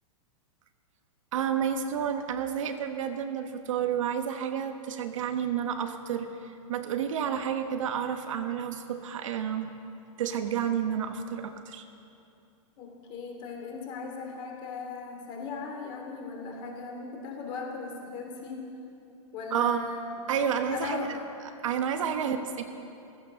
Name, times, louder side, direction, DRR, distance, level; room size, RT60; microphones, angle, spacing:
voice 1, 1.3-9.7 10.2-11.8 19.5-19.8 20.3-21.1 21.6-22.6, right 8 dB, 70° right, 6 dB, 1.4 m, -30 dB
voice 2, 12.8-18.6 19.3-20.1 20.7-21.2 22.2-22.4, left 4 dB, 30° left, 2 dB, 2.8 m, -38 dB
15.0 x 15.0 x 6.3 m, 2.7 s
supercardioid pair, 165°, 17 cm